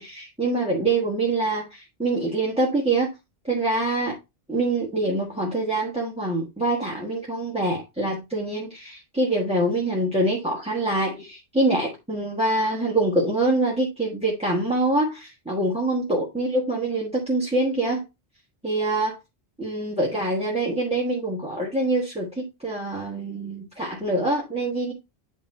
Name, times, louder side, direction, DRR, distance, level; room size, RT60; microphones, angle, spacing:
voice 1, 0.0-3.1 3.5-4.2 4.5-18.0 18.6-19.2 19.6-24.9, right 2 dB, 5° right, 1.3 m, -25 dB
8.4 x 3.1 x 4.3 m
omnidirectional pair, 1.1 m